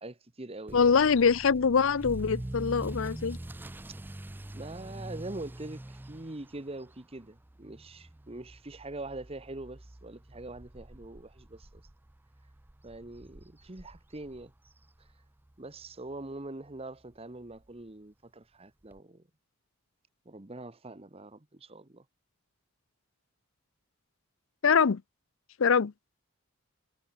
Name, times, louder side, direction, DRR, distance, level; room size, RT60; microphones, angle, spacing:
voice 1, 0.0-0.9 4.5-11.8 12.8-14.5 15.6-19.2 20.2-22.0, right 2 dB, 25° right, 1.1 m, -43 dB
voice 2, 0.7-3.4 24.6-25.0 25.6-25.9, left 6 dB, 65° left, 0.5 m, -24 dB
Motor vehicle (road) / Accelerating revving vroom, 0.7-15.5 15.8-16.2 16.7-16.8 17.1-17.2 17.5-17.6 18.9-19.0, right 1 dB, 10° right, 0.4 m, -44 dB
head